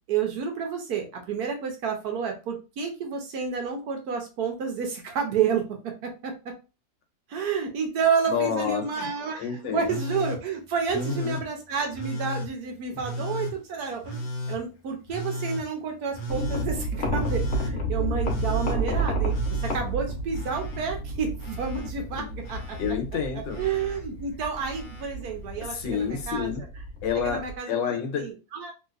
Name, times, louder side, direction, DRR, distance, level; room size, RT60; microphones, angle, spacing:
voice 1, 0.1-6.5 7.3-9.5 9.7-22.8 23.6-26.5 27.2-27.7 28.2-28.7, right 6 dB, 65° right, 1.1 m, -30 dB
voice 2, 8.3-9.1 9.4-10.0 10.9-11.4 12.9-13.2 22.1-22.3 22.8-23.6 25.6-26.7 27.0-28.3, left 7 dB, 85° left, 1.4 m, -29 dB
Telephone, 9.8-10.4 10.9-11.4 11.9-12.5 13.0-13.5 14.0-14.6 15.1-15.6 16.1-16.7 17.2-17.7 18.2-18.8 19.3-20.8 21.1-21.9 22.4-22.9 23.5-24.0 24.5-25.0 26.2-26.3, left 1 dB, 70° left, 1.3 m, -34 dB
sound 1, 16.3-27.6, right 2 dB, 55° left, 0.9 m, -31 dB
3.1 x 2.8 x 2.4 m
omnidirectional pair, 2.0 m